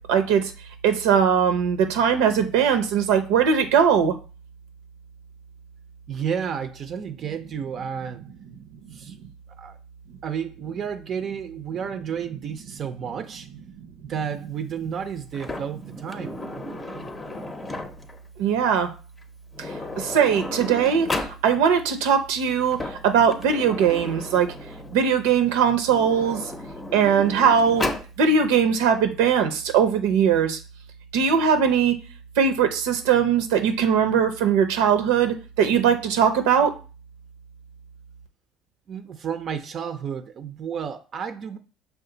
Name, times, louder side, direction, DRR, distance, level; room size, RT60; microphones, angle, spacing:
voice 1, 0.1-0.4 0.8-4.1 18.4-18.9 20.0-22.8 23.0-24.5 24.9-26.4 26.9-27.8 28.2-30.6 31.1-31.9 32.4-36.7, right 7 dB, 90° right, 7 dB, 0.7 m, -20 dB
voice 2, 6.1-8.2 8.9-9.2 9.6-9.8 10.2-13.5 14.0-16.4 38.9-41.6, right 7 dB, 45° right, 8 dB, 0.5 m, -31 dB
Sliding door, 15.3-18.2 19.2-19.3 19.5-21.4 22.5-25.0 25.8-28.1, left 2 dB, 20° left, 0.6 m, -34 dB
5.7 x 2.4 x 3.8 m, 0.34 s
supercardioid pair, 95°, 0 cm